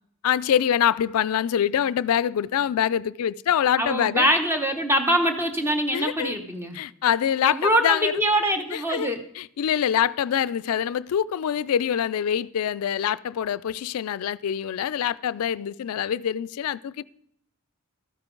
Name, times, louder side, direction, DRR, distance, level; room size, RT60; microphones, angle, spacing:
voice 1, 0.2-4.3 5.9-6.3 6.7-8.1 8.7-9.1 9.4-17.0, left 9 dB, 75° left, 0.3 m, -25 dB
voice 2, 3.8-6.8 7.4-9.2, right 1 dB, 10° right, 0.9 m, -23 dB
13.0 x 9.7 x 3.8 m
head